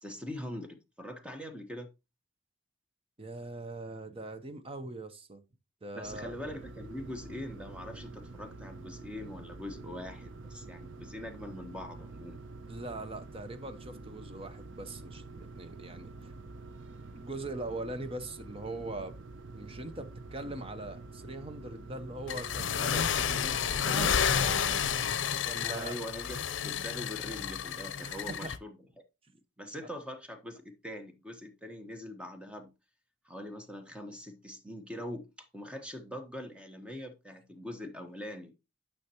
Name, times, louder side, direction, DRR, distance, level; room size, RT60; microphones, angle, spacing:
voice 1, 0.0-1.9 5.9-12.4 25.6-28.8 29.6-32.7 33.2-38.5, left 1 dB, 5° right, 1.1 m, -43 dB
voice 2, 3.2-5.4 5.8-6.4 12.7-16.3 17.1-19.2 19.5-24.9 25.4-25.9 28.0-28.5, right 2 dB, 30° right, 0.8 m, -41 dB
sound 1, 6.0-25.2, right 3 dB, 80° right, 0.7 m, -47 dB
sound 2, 22.3-28.6, left 7 dB, 75° left, 0.6 m, -31 dB
9.8 x 5.8 x 2.9 m
head